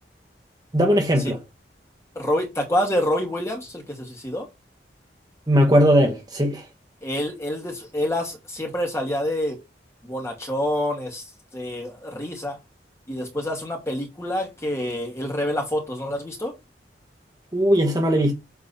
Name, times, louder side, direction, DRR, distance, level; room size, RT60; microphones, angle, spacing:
voice 1, 0.7-1.4 5.5-6.6 17.5-18.3, equal, 20° right, 1.3 m, -19 dB
voice 2, 2.2-4.5 7.0-9.6 10.0-11.2 11.5-12.6 13.1-16.5, left 1 dB, 15° left, 2.3 m, -27 dB
8.3 x 3.9 x 4.2 m
head